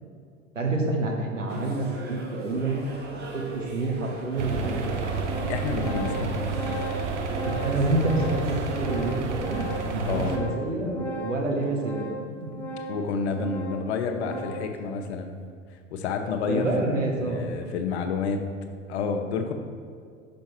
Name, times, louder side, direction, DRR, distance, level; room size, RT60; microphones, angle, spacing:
voice 1, 0.5-2.9 3.3-5.0 7.4-12.1 16.4-17.4, right 2 dB, 85° right, 0 dB, 1.0 m, -28 dB
sound 1, 1.5-8.9, right 3 dB, 25° right, 1.0 m, -40 dB
Organ, 3.5-3.6 4.5-4.6 4.9-14.8, right 1 dB, 5° left, 0.5 m, -37 dB
sound 2, 4.4-10.4, right 4 dB, 65° right, 0.8 m, -30 dB
voice 2, 5.5-6.5 10.0-10.4 12.9-15.3 15.9-16.7 17.2-18.4 18.9-19.5, left 5 dB, 60° left, 6 dB, 0.7 m, -29 dB
5.5 x 5.1 x 4.4 m, 2.2 s
figure-of-eight pair, 80°, 38 cm